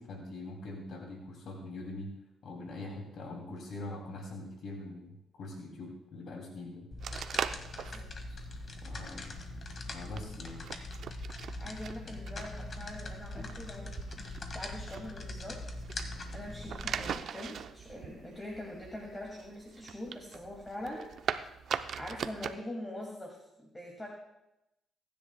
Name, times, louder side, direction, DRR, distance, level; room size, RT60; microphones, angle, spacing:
voice 1, 0.0-2.1 2.4-6.9 8.8-9.4 9.9-10.6, left 2 dB, 65° left, 0 dB, 2.6 m, -43 dB
sound 1, 6.9-17.1, left 2 dB, 40° left, 1.7 m, -42 dB
sound 2, 7.0-22.6, right 8 dB, 65° right, 0.6 m, -42 dB
voice 2, 7.8-8.4 11.6-14.0 14.5-15.6 16.3-21.1 22.0-24.1, left 1 dB, 20° left, -1 dB, 2.2 m, -43 dB
23.5 x 10.5 x 2.2 m, 0.89 s
cardioid pair, 90°, 0 cm